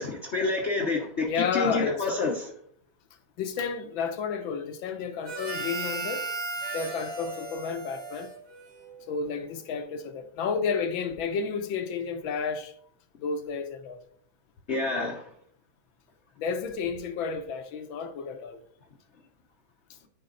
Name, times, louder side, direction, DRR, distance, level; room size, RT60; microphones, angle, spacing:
voice 1, 0.0-2.5 14.7-15.2, left 3 dB, 45° left, 0.9 m, -28 dB
voice 2, 1.2-2.1 3.4-6.3 6.7-8.3 9.1-12.7 13.2-14.0 16.4-18.6, left 6 dB, 75° left, 1.6 m, -31 dB
Harmonica, 5.2-9.0, right 3 dB, 45° right, 1.9 m, -36 dB
9.8 x 5.0 x 3.9 m
omnidirectional pair, 2.2 m